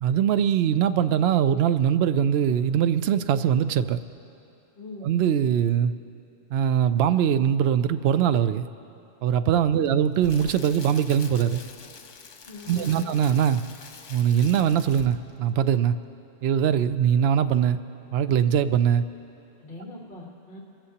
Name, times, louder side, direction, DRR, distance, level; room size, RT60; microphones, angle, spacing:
voice 1, 0.0-4.0 5.0-5.9 6.5-8.7 9.2-11.6 12.7-13.6 14.1-16.0 16.4-17.8 18.1-19.0, right 9 dB, 65° right, 11 dB, 0.8 m, -22 dB
voice 2, 4.8-5.1 9.7-10.0 12.4-13.1 19.6-20.6, left 1 dB, 50° left, -3 dB, 1.6 m, -40 dB
Crackle, 9.8-15.3 15.6-15.8, left 5 dB, 85° left, 1.2 m, -44 dB
27.0 x 15.0 x 2.9 m, 2.8 s
omnidirectional pair, 1.2 m